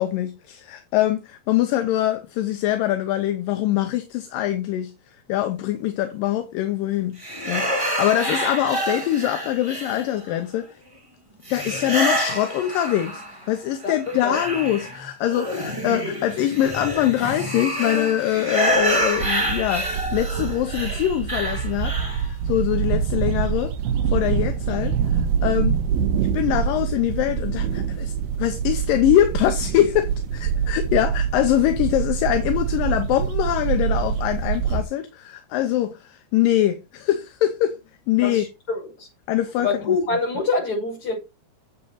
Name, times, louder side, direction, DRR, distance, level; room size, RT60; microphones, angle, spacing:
voice 1, 0.0-7.2 7.5-10.7 11.5-23.7 24.1-25.8 26.2-37.8 38.1-38.5 39.3-40.0, left 12 dB, 75° left, 2.3 m, -23 dB
sound 1, 7.2-10.4 11.4-13.5 13.8-22.3, equal, 10° right, 1.6 m, -27 dB
sound 2, 18.7-34.8, right 7 dB, 75° right, 2.7 m, -25 dB
voice 2, 38.2-39.1 39.6-41.2, left 3 dB, 35° left, 6.6 m, -25 dB
8.8 x 7.7 x 4.2 m
omnidirectional pair, 4.5 m